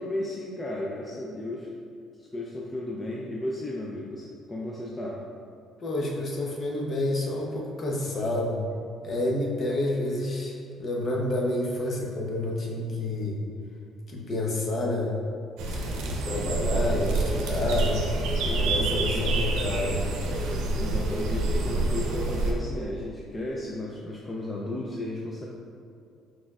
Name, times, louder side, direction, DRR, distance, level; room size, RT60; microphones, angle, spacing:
voice 1, 0.0-1.7 2.2-5.2 18.4-19.5 20.7-25.5, left 1 dB, 20° left, -3 dB, 0.4 m, -34 dB
voice 2, 5.8-8.6 9.0-13.4 14.1-15.2 15.7-18.0 18.5-20.0, left 1 dB, 40° left, -2 dB, 0.7 m, -29 dB
sound 1, 15.6-22.5, right 2 dB, 85° right, 0.6 m, -27 dB
4.4 x 4.2 x 2.4 m, 2.4 s
cardioid pair, 120°, 0 cm